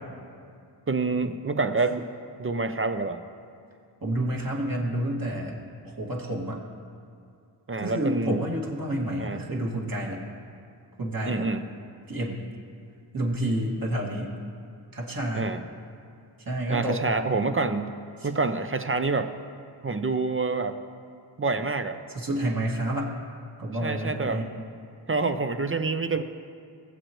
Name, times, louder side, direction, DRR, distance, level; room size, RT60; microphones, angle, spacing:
voice 1, 0.9-2.1 2.4-3.2 7.7-8.5 9.2-9.4 11.3-11.6 15.3-15.6 16.7-17.9 18.2-19.3 19.8-20.8 21.4-22.0 23.8-24.4 25.1-26.2, right 3 dB, 30° right, 8 dB, 0.6 m, -27 dB
voice 2, 4.0-5.6 5.8-6.6 7.8-10.2 11.0-11.5 12.1-12.4 13.1-14.3 14.9-15.5 16.4-17.2 18.2-18.3 22.1-23.1 23.6-24.5, right 1 dB, 50° right, -3 dB, 2.3 m, -29 dB
20.5 x 7.9 x 3.1 m, 2.4 s
cardioid pair, 70°, 44 cm